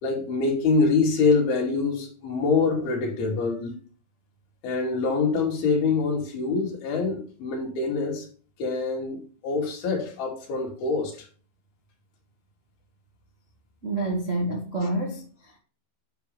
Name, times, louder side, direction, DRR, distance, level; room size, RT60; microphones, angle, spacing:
voice 1, 0.0-3.8 4.6-8.3 8.6-11.2, left 4 dB, 75° left, 4.6 m, -25 dB
voice 2, 13.8-15.6, right 2 dB, 90° right, 0.6 m, -28 dB
10.0 x 5.9 x 3.3 m
omnidirectional pair, 4.4 m